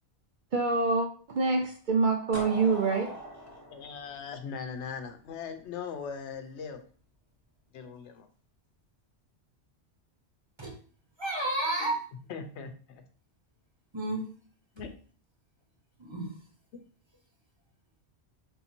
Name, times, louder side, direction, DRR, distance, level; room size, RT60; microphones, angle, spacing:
voice 1, 0.5-3.1, right 4 dB, 55° right, 0.6 m, -26 dB
sound 1, 2.3-5.2, equal, 20° left, 1.1 m, -41 dB
voice 2, 3.7-6.9 7.7-8.3 12.3-13.0 14.7-14.9, left 6 dB, 90° left, 0.9 m, -40 dB
voice 3, 11.2-12.1 13.9-14.2 16.0-16.3, right 1 dB, 25° right, 1.0 m, -31 dB
3.7 x 2.7 x 4.3 m
omnidirectional pair, 1.1 m